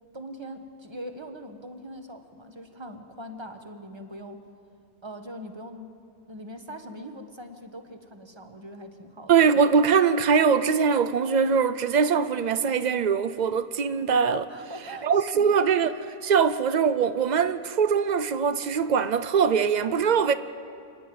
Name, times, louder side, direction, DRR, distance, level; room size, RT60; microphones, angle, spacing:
voice 1, 0.1-4.4 5.0-5.9 6.3-9.3 14.5-15.6, equal, 20° right, 1.2 m, -41 dB
voice 2, 9.3-14.5 15.0-20.3, right 6 dB, 90° right, 0.3 m, -22 dB
28.5 x 10.5 x 9.2 m
omnidirectional pair, 1.5 m